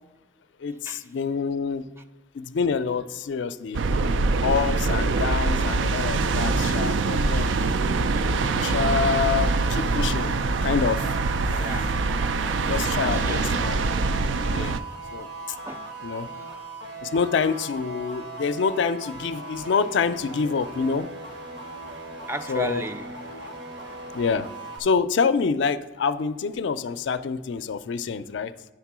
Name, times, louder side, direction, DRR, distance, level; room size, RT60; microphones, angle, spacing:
voice 1, 0.6-1.8 2.4-3.8 4.4-7.5 8.4-10.3 10.6-11.0 12.7-13.8 14.5-14.8 15.1-15.3 16.0-16.3 17.0-21.1 22.5-22.8 24.1-24.5 24.8-28.5, left 5 dB, 75° left, 0.4 m, -26 dB
sound 1, 3.7-14.8, right 3 dB, 90° right, 0.4 m, -24 dB
voice 2, 3.9-4.2 8.1-8.3 11.6-13.5 15.6-15.9 16.3-16.5 22.3-23.1 23.4-23.5 23.8-24.0, right 1 dB, 15° right, 0.3 m, -36 dB
sound 2, 9.3-24.8, right 2 dB, 65° right, 1.1 m, -38 dB
9.9 x 3.7 x 6.0 m
head